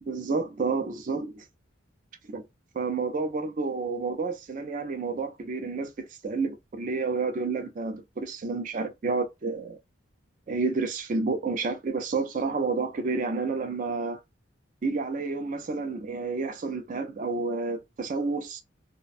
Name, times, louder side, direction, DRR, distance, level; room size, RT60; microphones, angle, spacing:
voice 1, 0.0-1.5 2.3-2.5 2.7-9.8 10.5-14.2 14.8-18.6, right 4 dB, 40° right, 0.4 m, -30 dB
2.4 x 2.1 x 2.5 m
head